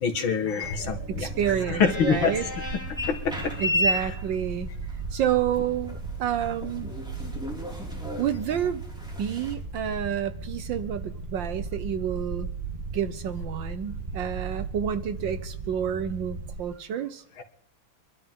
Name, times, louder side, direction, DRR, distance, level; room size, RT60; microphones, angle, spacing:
voice 1, 0.0-1.3 1.7-2.4 3.1-3.3 17.4-17.5, left 6 dB, 65° left, 5 dB, 2.4 m, -25 dB
sound 1, 0.6-16.6, right 3 dB, 25° right, 0.9 m, -36 dB
voice 2, 1.1-2.5 3.6-4.7 5.1-6.9 8.2-8.8 9.2-12.5 12.9-17.2, right 9 dB, 65° right, 11 dB, 1.3 m, -29 dB
sound 2, 1.3-9.5, left 1 dB, ahead, 4.7 m, -34 dB
24.5 x 12.5 x 3.7 m, 0.68 s
omnidirectional pair, 2.4 m